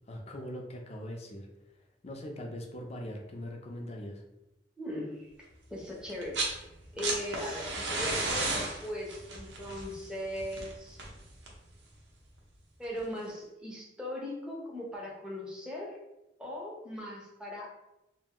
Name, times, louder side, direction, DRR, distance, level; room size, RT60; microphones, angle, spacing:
voice 1, 0.1-1.5 2.0-4.2, left 1 dB, 35° left, 2 dB, 0.5 m, -41 dB
voice 2, 4.8-5.3 5.7-6.4 6.9-11.0 12.8-16.0 16.4-17.7, left 1 dB, 5° right, -4 dB, 0.7 m, -39 dB
sound 1, 6.1-6.6 6.8-11.7 13.0-13.1, right 2 dB, 90° right, 0.7 m, -34 dB
2.5 x 2.0 x 3.6 m, 0.93 s
head